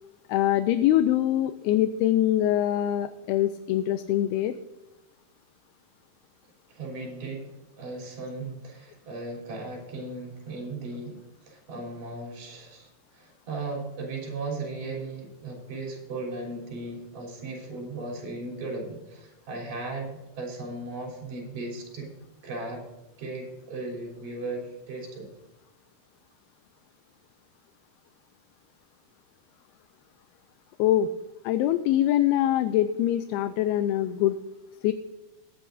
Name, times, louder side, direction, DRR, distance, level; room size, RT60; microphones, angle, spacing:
voice 1, 0.3-4.6 30.8-31.1 31.4-34.4 34.8-34.9, left 12 dB, 80° left, 11 dB, 2.4 m, -23 dB
voice 2, 6.7-22.1 22.4-22.9 23.2-25.3, right 2 dB, 55° right, 0 dB, 4.8 m, -37 dB
20.5 x 9.6 x 2.6 m, 1.0 s
omnidirectional pair, 4.7 m